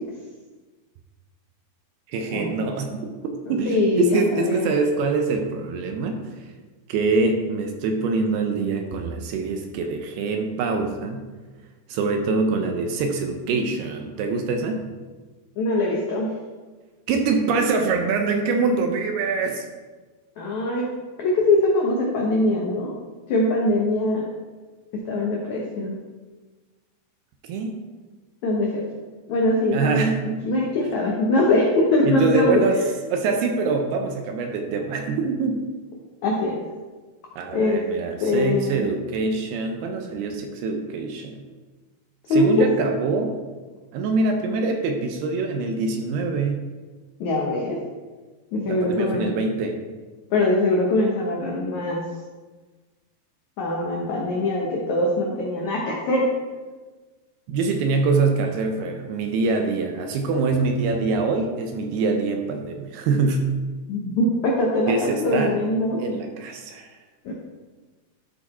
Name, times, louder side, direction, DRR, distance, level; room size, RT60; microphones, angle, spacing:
voice 1, 2.1-3.1 3.5-6.2 6.9-11.2 11.9-14.8 17.1-19.7 27.5-27.7 29.7-30.2 32.0-32.8 33.1-35.6 37.4-41.4 42.3-43.3 43.9-46.6 48.7-49.8 57.5-63.4 64.9-65.5 66.0-66.9, right 4 dB, 75° right, 4 dB, 2.6 m, -24 dB
voice 2, 3.5-4.7 15.6-16.3 20.4-20.9 21.2-22.9 23.3-24.3 24.9-25.9 28.4-28.8 29.3-30.1 30.4-32.7 36.2-36.6 37.5-37.8 38.2-38.9 42.3-42.5 47.2-47.8 48.5-49.3 50.3-52.0 53.6-56.3 63.9-66.0 67.2-67.3, left 2 dB, 80° left, -2 dB, 1.6 m, -22 dB
12.5 x 4.9 x 4.2 m, 1.3 s
omnidirectional pair, 5.0 m